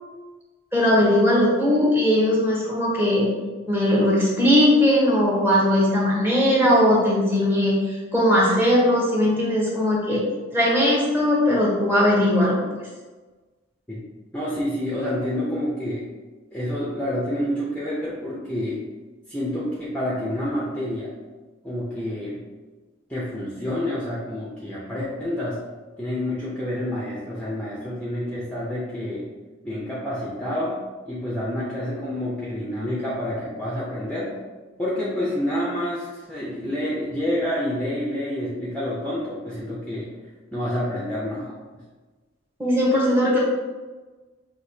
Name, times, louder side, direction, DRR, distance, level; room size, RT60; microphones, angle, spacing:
voice 1, 0.7-3.3 3.7-10.2 10.5-12.6 42.6-43.4, left 1 dB, 10° right, -4 dB, 1.0 m, -19 dB
voice 2, 14.3-16.1 16.5-18.9 19.3-21.2 21.6-22.4 23.1-25.6 26.0-29.3 29.6-34.4 34.8-40.2 40.5-41.6, left 1 dB, 5° left, -7 dB, 0.6 m, -28 dB
6.0 x 2.8 x 2.7 m, 1.3 s
head